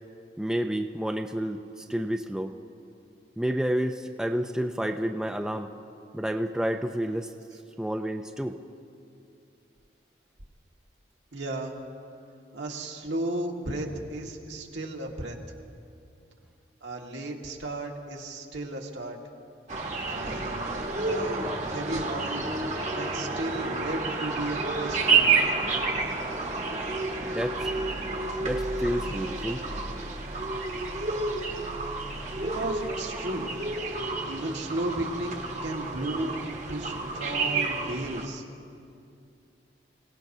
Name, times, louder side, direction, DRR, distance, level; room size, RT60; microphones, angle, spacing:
voice 1, 0.4-2.5 3.4-5.7 6.1-7.3 7.8-8.6 27.2-27.7 28.4-29.6, equal, 5° right, 5 dB, 0.4 m, -30 dB
voice 2, 11.3-11.8 12.5-15.4 16.8-19.2 20.1-22.5 22.9-25.6 32.3-33.5 34.2-38.4, right 1 dB, 90° right, 0 dB, 1.6 m, -34 dB
sound 1, 19.7-38.3, right 4 dB, 40° right, 1.1 m, -30 dB
25.5 x 17.0 x 2.7 m, 2.5 s
head